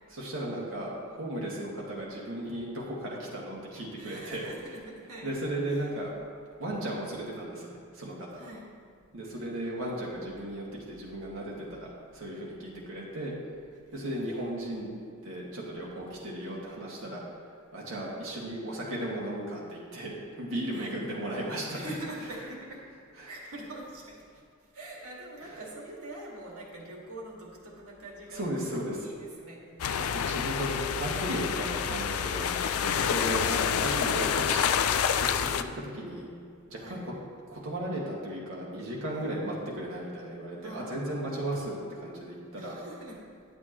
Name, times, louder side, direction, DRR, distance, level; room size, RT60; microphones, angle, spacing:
voice 1, 0.2-4.5 5.2-6.1 6.6-8.4 9.1-13.3 13.9-15.0 15.2-17.2 17.7-21.8 23.2-23.3 25.4-25.5 28.3-29.1 30.0-34.6 35.2-36.3 36.7-37.1 37.5-42.8, right 1 dB, 65° right, -4 dB, 2.0 m, -35 dB
voice 2, 4.0-5.3 5.7-5.9 8.4-8.7 13.9-14.5 20.7-21.0 21.7-22.8 23.2-24.2 24.7-28.7 29.0-29.9 30.3-30.5 33.0-33.2 35.7-36.3 36.8-37.1 39.1-39.3 40.6-41.2 42.6-43.3, right 1 dB, 90° right, -3 dB, 1.9 m, -44 dB
sound 1, 29.8-35.6, left 8 dB, 85° left, 0.4 m, -28 dB
11.0 x 7.6 x 3.0 m, 2.3 s
head